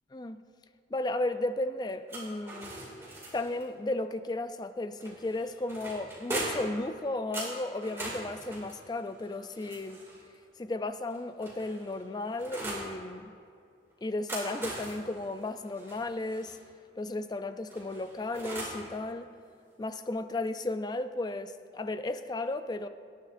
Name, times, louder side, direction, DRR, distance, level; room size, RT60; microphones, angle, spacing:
voice 1, 0.1-0.4 0.9-2.7 3.3-10.0 10.6-13.4 14.0-16.6 17.0-19.3 19.8-22.9, left 2 dB, 25° left, 11 dB, 0.3 m, -34 dB
sound 1, 2.1-3.6 5.0-6.8 7.3-10.3 11.1-12.9 14.0-16.6 17.7-18.9, right 1 dB, 15° right, 2.2 m, -40 dB
18.0 x 10.0 x 2.5 m, 2.4 s
head